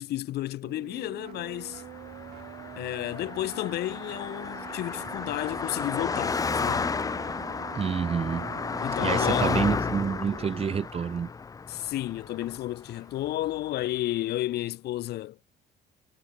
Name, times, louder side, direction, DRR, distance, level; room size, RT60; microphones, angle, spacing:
voice 1, 0.0-1.8 2.8-6.9 8.8-9.6 11.7-15.4, left 15 dB, 75° left, 3.7 m, -32 dB
sound 1, 0.6-10.6, right 14 dB, 70° right, 2.7 m, -45 dB
Car passing by, 1.7-13.3, left 5 dB, 20° left, 0.6 m, -32 dB
voice 2, 7.7-8.7 9.0-11.3, right 7 dB, 35° right, 1.9 m, -28 dB
cardioid pair, 110°, 17 cm